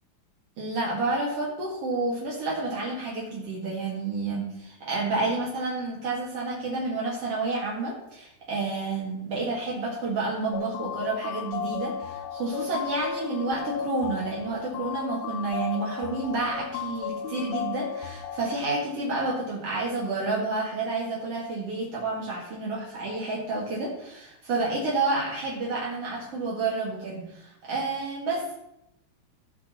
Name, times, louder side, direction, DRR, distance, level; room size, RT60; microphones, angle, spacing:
voice 1, 0.6-28.6, right 3 dB, 70° right, -5 dB, 1.4 m, -30 dB
sound 1, 10.5-18.5, left 8 dB, 80° left, 2.7 m, -34 dB
15.5 x 5.4 x 4.3 m, 0.82 s
omnidirectional pair, 5.8 m